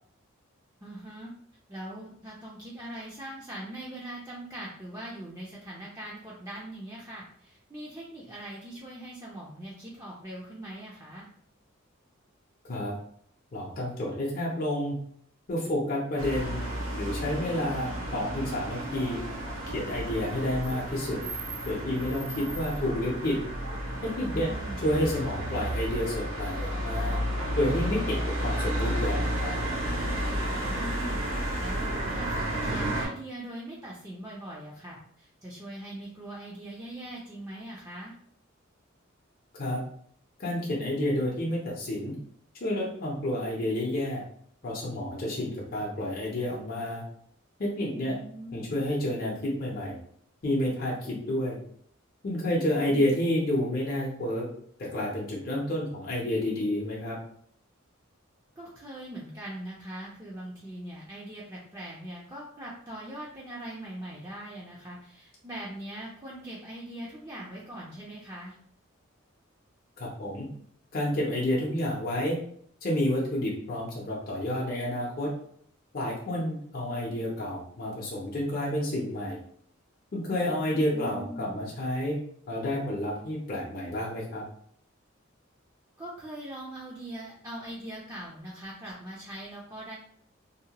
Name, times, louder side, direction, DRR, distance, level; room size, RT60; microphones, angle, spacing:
voice 1, 0.8-1.3 1.7-11.3 24.3-24.9 30.7-31.3 31.6-38.1 48.0-48.9 52.8-53.1 58.6-68.6 80.9-81.7 86.0-89.9, right 1 dB, 15° right, -5 dB, 0.4 m, -41 dB
voice 2, 13.5-14.9 15.5-16.6 17.0-19.2 19.7-21.2 21.6-23.4 24.0-24.5 24.8-27.2 27.5-29.5 39.6-39.8 40.4-42.1 42.6-44.2 44.6-47.0 47.6-48.2 48.5-50.0 50.4-51.6 52.2-54.5 54.8-57.2 70.0-70.5 70.9-72.4 72.8-75.3 75.9-79.4 80.1-82.2 82.5-84.4, left 1 dB, 45° left, -4 dB, 0.6 m, -30 dB
sound 1, 16.2-33.1, equal, 80° right, 0.8 m, -32 dB
2.7 x 2.1 x 2.8 m, 0.62 s
head